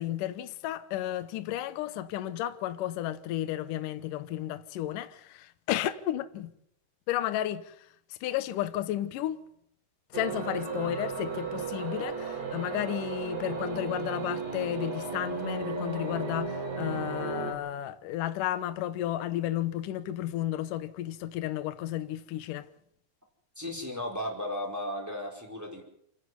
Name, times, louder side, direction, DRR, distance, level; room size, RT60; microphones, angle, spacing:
voice 1, 0.0-6.5 7.1-9.4 10.1-22.7, left 13 dB, 85° left, 1.9 m, -33 dB
sound 1, 10.1-17.5, right 4 dB, 45° right, 3.6 m, -35 dB
voice 2, 23.6-25.8, left 1 dB, 5° right, 4.1 m, -35 dB
28.0 x 10.5 x 9.5 m
omnidirectional pair, 5.3 m